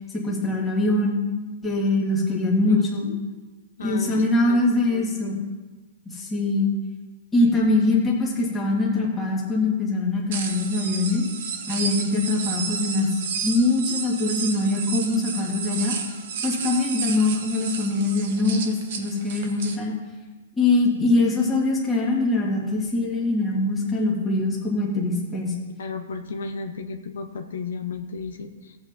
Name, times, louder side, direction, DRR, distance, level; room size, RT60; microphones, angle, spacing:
voice 1, 0.2-1.2 1.6-3.1 3.8-5.3 6.1-6.7 7.3-11.2 11.7-15.9 16.4-19.9 20.6-25.5, left 2 dB, 5° left, -4 dB, 1.7 m, -23 dB
voice 2, 2.7-3.2 3.8-5.4 25.8-28.8, left 4 dB, 70° left, 5 dB, 1.0 m, -34 dB
sound 1, 10.3-19.8, right 6 dB, 45° right, 1.1 m, -32 dB
16.5 x 8.1 x 2.7 m, 1.3 s
hypercardioid pair, 180°, 0 cm